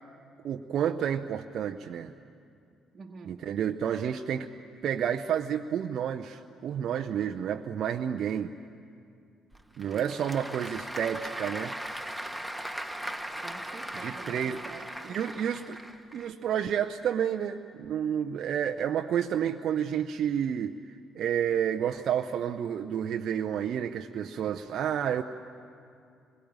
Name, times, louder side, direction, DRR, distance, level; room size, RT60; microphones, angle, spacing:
voice 1, 0.4-2.1 3.3-4.5 4.8-8.5 9.8-11.8 14.0-14.6 15.0-15.8 16.1-25.2, right 9 dB, 60° right, 5 dB, 0.7 m, -30 dB
voice 2, 2.9-3.5 9.9-10.2 13.4-15.2, right 4 dB, 40° right, 1 dB, 1.4 m, -47 dB
Applause / Crowd, 9.5-16.3, right 1 dB, ahead, 1.7 m, -39 dB
27.0 x 22.0 x 8.9 m, 2.5 s
hypercardioid pair, 50°, 0 cm